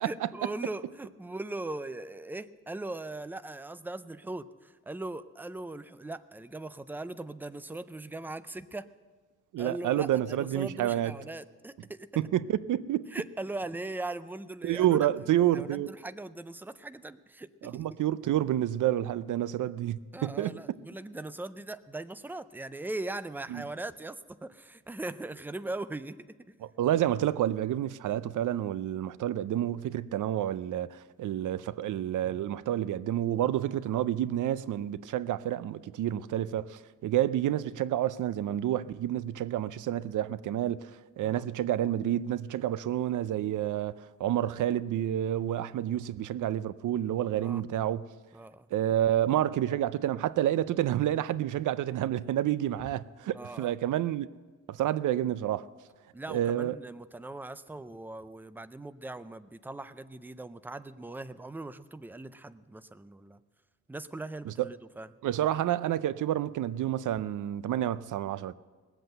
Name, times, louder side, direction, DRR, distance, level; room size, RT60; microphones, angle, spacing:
voice 1, 0.0-8.9 9.6-12.2 13.1-15.0 15.5-17.9 20.1-26.3 41.2-41.5 47.4-47.6 48.3-48.7 53.3-53.8 56.1-63.4 63.9-65.1, right 2 dB, 5° right, 0.4 m, -40 dB
voice 2, 9.5-11.1 12.2-13.0 14.6-15.9 17.6-20.5 23.5-23.6 26.8-40.8 41.2-48.1 48.7-54.3 54.7-55.7 56.3-56.7 64.5-64.7 65.2-68.5, right 12 dB, 80° right, 0.5 m, -29 dB
19.0 x 8.0 x 7.8 m
wide cardioid pair, 130°, 30 cm